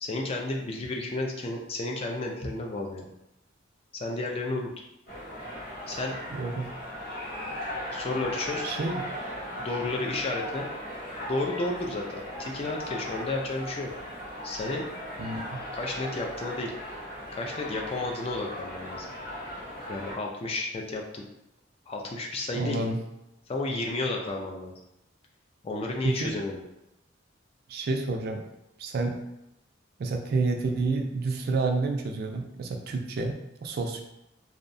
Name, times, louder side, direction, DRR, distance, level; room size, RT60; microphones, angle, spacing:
voice 1, 0.0-3.1 3.9-4.7 5.9-6.2 7.9-8.7 9.6-10.7 11.2-13.9 14.4-14.9 15.7-16.7 17.3-19.1 19.9-21.2 21.9-22.9 23.5-24.7 25.6-26.6, left 2 dB, 30° left, 0 dB, 0.3 m, -32 dB
sound 1, 5.1-20.2, equal, 50° left, 0.7 m, -38 dB
voice 2, 6.3-6.7 8.6-9.0 15.2-15.6 22.5-23.0 26.0-26.3 27.7-28.4 28.8-29.2 30.0-34.0, right 3 dB, 50° right, 4 dB, 0.3 m, -29 dB
2.6 x 2.0 x 2.5 m, 0.87 s
head